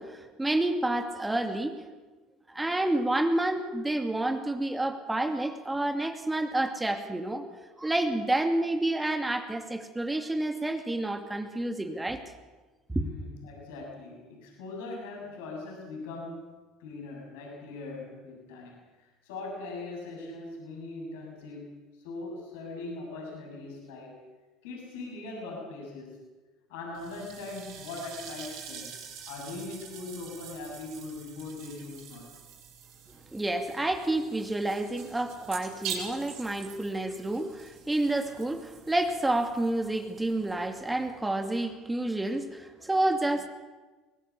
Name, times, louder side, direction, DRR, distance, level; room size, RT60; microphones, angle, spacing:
voice 1, 0.0-1.8 2.5-7.5 7.8-12.2 12.9-13.1 33.3-43.5, right 2 dB, 10° right, 6 dB, 2.6 m, -29 dB
voice 2, 12.9-16.4 16.8-24.2 24.6-26.2 26.7-28.9 29.3-32.3 36.8-36.9, left 3 dB, 75° left, -1 dB, 7.2 m, -41 dB
sound 1, 26.9-41.2, right 7 dB, 65° right, 6.4 m, -45 dB
22.5 x 19.5 x 7.2 m, 1.2 s
hypercardioid pair, 70°, 0 cm